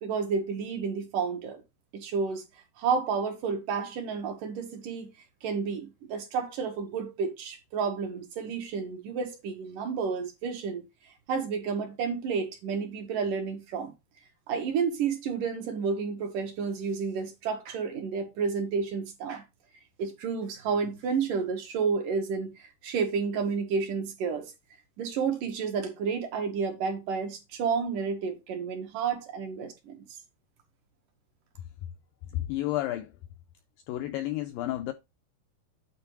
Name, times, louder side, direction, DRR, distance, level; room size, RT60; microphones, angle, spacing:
voice 1, 0.0-1.6 1.9-2.4 2.8-5.1 5.4-10.8 11.3-13.9 14.5-19.4 20.0-24.5 25.0-30.0, right 5 dB, 65° right, 2.4 m, -31 dB
voice 2, 32.3-33.1 33.9-34.9, left 15 dB, 85° left, 2.0 m, -31 dB
9.2 x 4.1 x 4.6 m
omnidirectional pair, 4.7 m